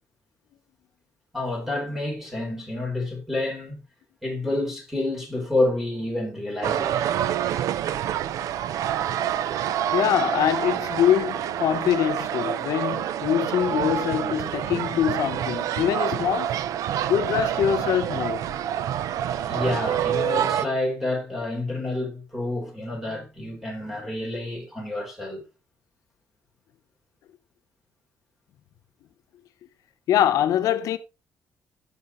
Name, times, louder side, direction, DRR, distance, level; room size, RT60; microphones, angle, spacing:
voice 1, 1.3-3.9 4.2-6.9 19.4-25.4, left 2 dB, 5° right, 3.7 m, -29 dB
sound 1, 6.6-20.6, right 10 dB, 85° right, 0.5 m, -27 dB
voice 2, 9.9-16.6 17.1-18.5 30.1-31.0, left 10 dB, 90° left, 0.8 m, -24 dB
15.5 x 5.7 x 3.0 m
cardioid pair, 160°, 6 cm